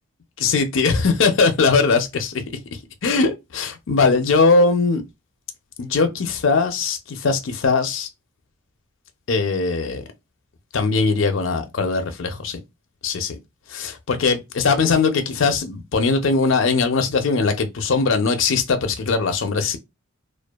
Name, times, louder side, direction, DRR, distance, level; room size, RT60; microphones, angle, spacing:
voice 1, 0.4-2.4 3.0-5.0 5.8-8.1 9.3-10.0 10.7-12.6 13.0-13.4 13.7-19.8, left 4 dB, 65° left, 0.5 m, -20 dB
2.5 x 2.3 x 2.2 m
head